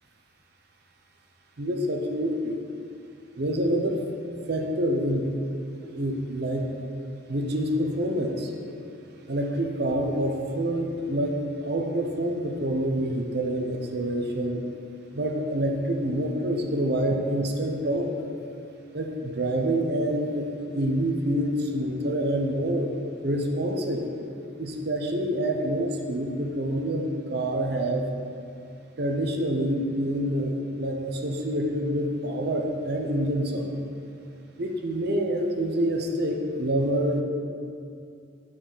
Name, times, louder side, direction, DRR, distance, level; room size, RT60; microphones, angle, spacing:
voice 1, 1.6-2.6 3.4-4.1 4.5-5.3 5.7-6.7 7.3-8.5 9.3-14.6 15.1-18.1 18.9-20.5 20.7-22.9 23.2-24.1 24.6-28.1 29.0-33.8 34.6-37.2, right 1 dB, 50° right, 2 dB, 0.7 m, -27 dB
8.8 x 6.1 x 4.0 m, 2.5 s
head